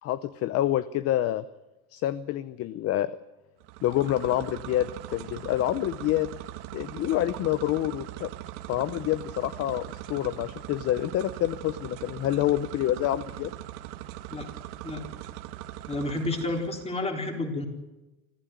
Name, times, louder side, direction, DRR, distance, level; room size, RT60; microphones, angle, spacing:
voice 1, 0.0-1.4 1.9-3.1 3.8-6.3 6.7-8.3 8.7-13.5, left 13 dB, 35° left, 15 dB, 0.7 m, -27 dB
sound 1, 3.6-17.0, right 14 dB, 60° right, 1.9 m, -40 dB
voice 2, 15.9-17.7, left 2 dB, 15° left, 3 dB, 4.1 m, -30 dB
26.0 x 15.0 x 9.4 m, 1.0 s
supercardioid pair, 140°, 44 cm